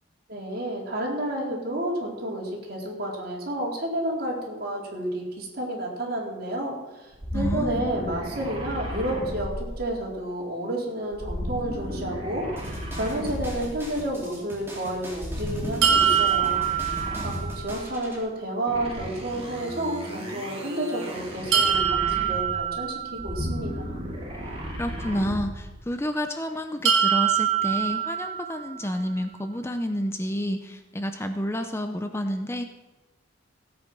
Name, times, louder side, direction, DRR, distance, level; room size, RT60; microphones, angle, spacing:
voice 1, 0.3-16.6 17.2-24.0, right 1 dB, 50° right, -2 dB, 3.9 m, -31 dB
sound 1, 7.1-10.2 11.1-13.8 15.1-17.7 18.7-22.6 23.1-25.6, equal, 30° right, 3.0 m, -34 dB
voice 2, 7.3-7.9 24.8-32.7, equal, 15° left, 7 dB, 0.7 m, -30 dB
sound 2, 12.6-18.2, right 1 dB, 10° right, 3.6 m, -42 dB
sound 3, 15.8-17.8 21.5-23.6 26.9-28.9, right 8 dB, 80° right, 2.1 m, -24 dB
16.0 x 8.6 x 6.2 m, 1.1 s
head